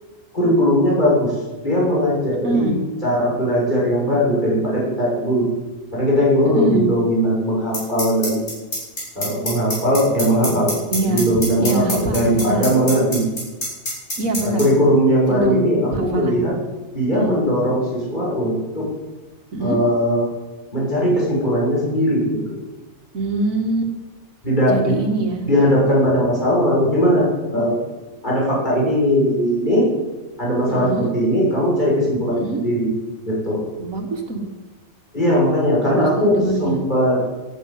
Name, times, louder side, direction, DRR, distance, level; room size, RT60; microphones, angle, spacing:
voice 1, 0.3-1.4 1.6-5.5 5.9-8.4 9.2-10.7 11.0-13.2 14.4-16.5 16.9-18.9 19.6-20.3 20.7-22.3 24.4-24.9 25.4-27.8 28.2-29.9 30.4-32.9 33.2-33.6 35.1-37.2, equal, 35° left, -5 dB, 6.8 m, -19 dB
voice 2, 2.4-2.8 6.5-6.9 10.9-11.3 11.6-12.7 14.2-14.6 15.3-15.6 15.9-16.4 17.1-17.4 19.5-19.8 23.1-23.9 24.7-25.4 30.7-31.1 32.3-32.6 33.8-34.4 35.8-36.8, right 2 dB, 75° right, 5 dB, 2.3 m, -23 dB
sound 1, 7.7-14.6, left 1 dB, 65° left, 7.1 m, -24 dB
12.0 x 10.0 x 9.4 m, 1.2 s
omnidirectional pair, 1.4 m